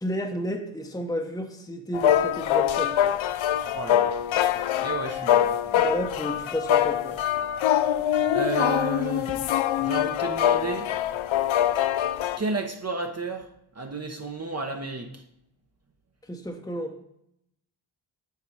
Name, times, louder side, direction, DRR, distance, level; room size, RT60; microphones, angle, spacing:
voice 1, 0.0-2.9 5.7-7.2 16.3-16.9, equal, 5° left, 3 dB, 0.9 m, -31 dB
sound 1, 1.9-12.4, left 10 dB, 75° left, 0.6 m, -24 dB
voice 2, 3.5-4.2 4.5-5.5 8.3-9.4 9.8-10.9 12.4-13.5 13.7-15.2, right 4 dB, 30° right, 3 dB, 1.0 m, -32 dB
9.4 x 4.4 x 4.8 m, 0.79 s
cardioid pair, 55°, 48 cm